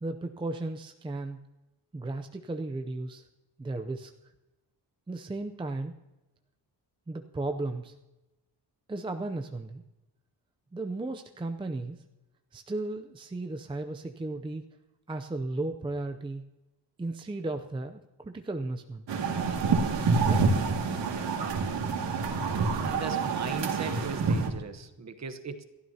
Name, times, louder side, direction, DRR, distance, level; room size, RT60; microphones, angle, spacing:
voice 1, 0.0-1.4 1.9-3.3 3.6-4.1 5.1-5.9 7.1-7.9 8.9-9.8 10.7-12.0 12.5-14.6 15.1-16.4 17.0-19.0 20.2-20.4, right 2 dB, 10° right, 6 dB, 0.5 m, -35 dB
sound 1, 19.1-24.5, right 4 dB, 75° right, 2.2 m, -27 dB
voice 2, 22.8-25.6, right 5 dB, 40° right, 9 dB, 1.0 m, -38 dB
28.5 x 12.5 x 2.8 m, 1.0 s
wide cardioid pair, 175°, 43 cm